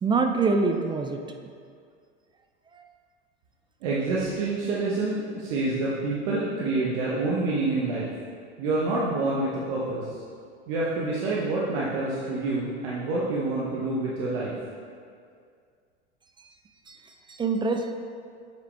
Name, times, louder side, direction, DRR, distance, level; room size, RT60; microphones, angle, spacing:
voice 1, 0.0-1.2 2.7-2.8 16.4-16.5 16.9-17.9, right 4 dB, 15° right, 5 dB, 0.4 m, -25 dB
voice 2, 3.8-8.1 8.6-10.2 10.7-14.5, right 2 dB, 60° right, -6 dB, 1.2 m, -27 dB
8.2 x 4.9 x 3.3 m, 2.2 s
hypercardioid pair, 85°, 33 cm